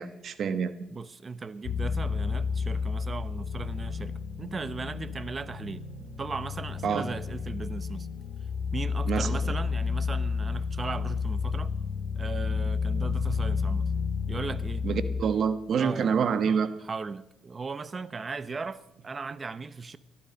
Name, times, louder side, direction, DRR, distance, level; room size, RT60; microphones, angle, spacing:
voice 1, 0.0-0.7 6.8-7.1 9.0-9.4 14.8-16.7, right 6 dB, 60° right, 1.1 m, -27 dB
voice 2, 0.9-8.1 8.7-11.7 12.1-13.9 14.3-14.8 15.8-16.1 16.8-20.0, right 4 dB, 35° right, 0.9 m, -37 dB
sound 1, 1.6-15.2, left 5 dB, 70° left, 4.1 m, -31 dB
18.5 x 12.0 x 5.3 m
cardioid pair, 90°, 0 cm